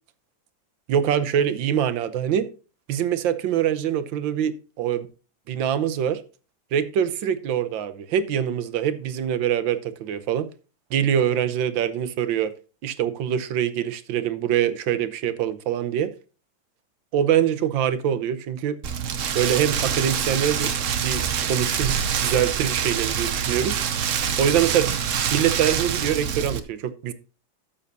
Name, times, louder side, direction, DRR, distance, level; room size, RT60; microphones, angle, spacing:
voice 1, 0.9-2.5 2.9-5.1 5.5-6.2 6.7-10.5 10.9-12.5 12.8-16.1 17.1-18.8 19.3-20.7 21.0-23.8 24.4-24.9 25.3-27.1, right 9 dB, 75° right, 1.6 m, -24 dB
Rain, 18.8-26.6, right 8 dB, 60° right, 0.8 m, -25 dB
12.5 x 7.2 x 2.7 m
omnidirectional pair, 2.1 m